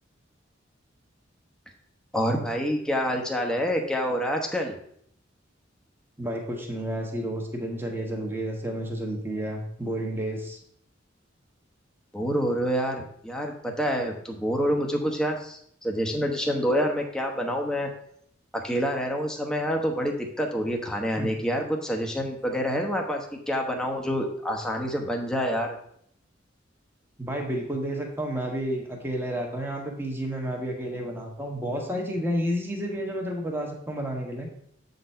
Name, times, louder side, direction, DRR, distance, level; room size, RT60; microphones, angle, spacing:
voice 1, 2.1-4.8 12.1-17.9 18.5-25.8, equal, 5° left, 1 dB, 1.0 m, -27 dB
voice 2, 6.2-10.6 21.2-21.3 27.2-34.5, equal, 10° right, 1 dB, 1.3 m, -31 dB
7.6 x 4.0 x 5.6 m, 0.66 s
head